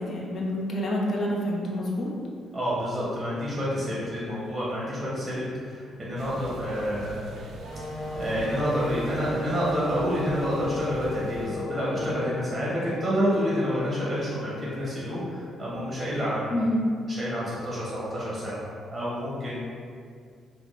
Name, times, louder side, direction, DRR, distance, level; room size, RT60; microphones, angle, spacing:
voice 1, 0.0-2.1 16.5-16.8, equal, 55° left, -2 dB, 0.5 m, -27 dB
voice 2, 2.5-7.3 8.1-16.7 17.1-18.7 18.9-19.6, equal, 20° right, -8 dB, 0.9 m, -28 dB
sound 1, 6.2-11.5, right 2 dB, 70° right, 0.4 m, -42 dB
sound 2, 7.7-15.7, left 3 dB, 75° left, 1.0 m, -37 dB
3.5 x 2.2 x 2.4 m, 2.2 s
cardioid pair, 90°, 0 cm